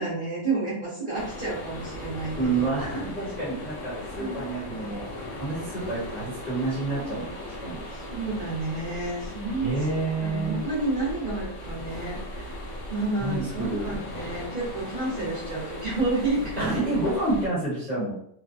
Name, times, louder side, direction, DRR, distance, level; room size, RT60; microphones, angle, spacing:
voice 1, 0.0-2.3 4.2-5.0 7.9-9.9 10.2-12.5 12.9-16.7, right 2 dB, 35° right, -9 dB, 1.1 m, -30 dB
sound 1, 1.1-17.5, left 1 dB, 65° left, 1.3 m, -38 dB
voice 2, 2.4-7.8 9.6-10.7 13.2-13.9 16.6-18.1, right 2 dB, 30° left, -9 dB, 1.0 m, -29 dB
3.2 x 2.2 x 2.6 m, 0.69 s
omnidirectional pair, 1.7 m